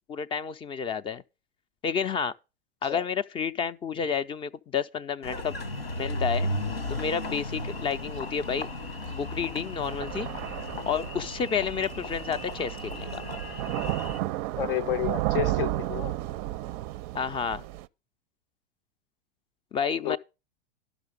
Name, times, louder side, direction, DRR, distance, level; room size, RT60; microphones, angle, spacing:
voice 1, 0.1-1.2 1.8-2.3 2.8-5.7 6.0-6.5 6.9-8.7 9.1-10.3 10.9-13.3 17.1-17.6 19.7-20.2, left 6 dB, 20° left, 0.4 m, -30 dB
Engine, 5.2-14.2, left 1 dB, 90° left, 1.5 m, -35 dB
Thunder / Rain, 6.9-17.9, right 15 dB, 40° right, 0.5 m, -34 dB
voice 2, 14.6-16.1 20.0-20.2, left 13 dB, 65° left, 0.6 m, -30 dB
12.0 x 5.9 x 4.9 m
hypercardioid pair, 95°, 29 cm